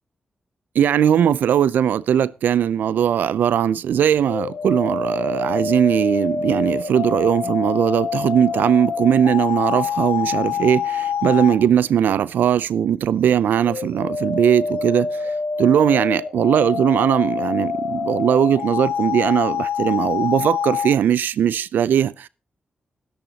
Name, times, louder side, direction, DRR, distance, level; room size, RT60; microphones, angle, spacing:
voice 1, 0.7-15.3 15.6-22.3, right 9 dB, 80° right, 0.5 m, -19 dB
sound 1, 4.3-11.6 13.6-20.9, left 6 dB, 80° left, 1.5 m, -26 dB
17.0 x 12.0 x 2.9 m
supercardioid pair, 40°, 3 cm